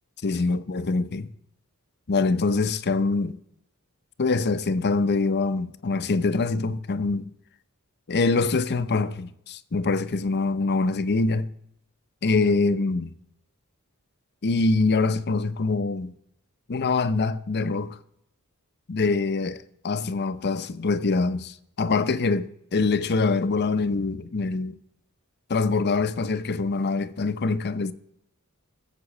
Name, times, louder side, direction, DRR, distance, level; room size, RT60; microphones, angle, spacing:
voice 1, 0.2-1.3 2.1-3.4 4.2-7.2 8.1-11.5 12.2-13.1 14.4-16.1 16.7-18.0 18.9-24.8 25.5-27.9, left 3 dB, 50° left, 0.6 m, -24 dB
15.5 x 7.6 x 7.2 m
head